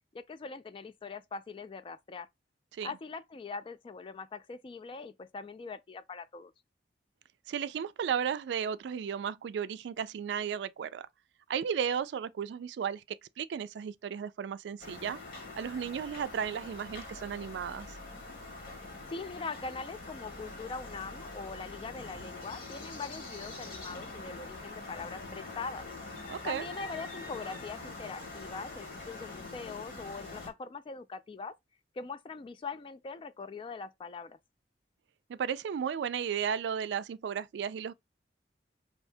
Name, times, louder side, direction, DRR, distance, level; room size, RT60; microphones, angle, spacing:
voice 1, 0.1-2.3 2.8-6.5 19.1-25.8 26.4-31.5 32.0-34.4, left 4 dB, 30° left, 0.3 m, -42 dB
voice 2, 7.5-11.1 11.5-15.2 15.6-17.9 26.3-26.6 35.3-37.9, right 7 dB, 70° right, 0.3 m, -34 dB
sound 1, 14.8-30.5, left 3 dB, 55° left, 1.1 m, -44 dB
2.7 x 2.7 x 3.3 m
head